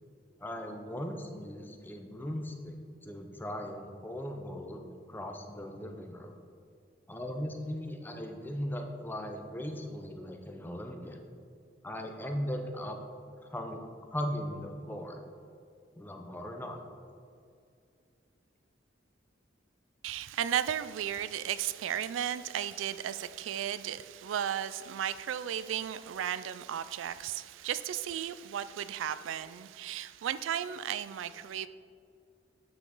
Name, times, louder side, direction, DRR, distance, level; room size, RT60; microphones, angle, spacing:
voice 1, 0.4-4.8 5.1-6.3 7.1-11.2 11.8-13.0 13.5-13.8 14.1-15.2 16.0-16.8, equal, 10° left, 4 dB, 0.6 m, -38 dB
voice 2, 20.0-31.7, right 10 dB, 85° right, 14 dB, 0.3 m, -34 dB
9.0 x 5.8 x 3.9 m, 2.4 s
head